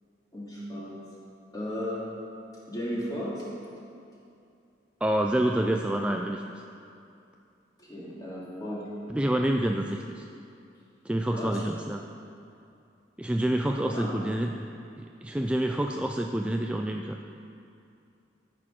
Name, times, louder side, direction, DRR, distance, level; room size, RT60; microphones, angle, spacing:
voice 1, 0.3-1.0 1.5-2.0 2.7-3.5 7.8-8.9 11.3-11.6 13.9-14.1, equal, 20° left, -7 dB, 2.7 m, -35 dB
voice 2, 5.0-6.4 9.1-10.3 11.0-12.1 13.2-14.6 15.0-17.2, right 1 dB, 5° right, 3 dB, 0.3 m, -27 dB
13.5 x 6.2 x 6.0 m, 2.6 s
head